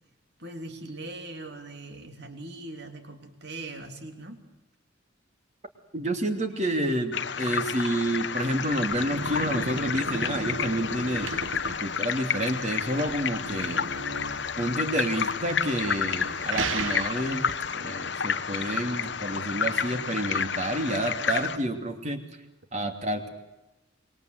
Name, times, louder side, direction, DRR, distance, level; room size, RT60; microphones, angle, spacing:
voice 1, 0.4-4.4, right 2 dB, 55° right, 6 dB, 3.3 m, -40 dB
voice 2, 5.9-11.4 11.6-13.9 14.6-17.5 17.7-22.2 22.7-23.3, right 1 dB, 35° right, 6 dB, 2.8 m, -29 dB
sound 1, 7.1-21.6, left 6 dB, 60° left, 1.0 m, -30 dB
sound 2, 8.4-17.7, right 4 dB, 75° right, 1.2 m, -37 dB
26.5 x 22.5 x 8.1 m, 0.98 s
head